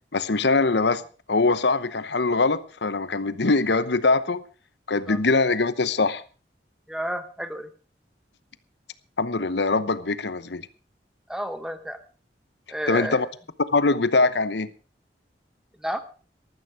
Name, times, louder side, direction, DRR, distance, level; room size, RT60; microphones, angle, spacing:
voice 1, 0.1-1.0 1.3-4.4 4.9-6.2 9.2-10.7 12.9-13.3 13.6-14.7, left 3 dB, 80° left, 0.9 m, -22 dB
voice 2, 6.9-7.7 11.3-12.0 12.7-13.3 15.8-16.0, equal, 5° right, 1.1 m, -31 dB
14.0 x 13.0 x 4.9 m
head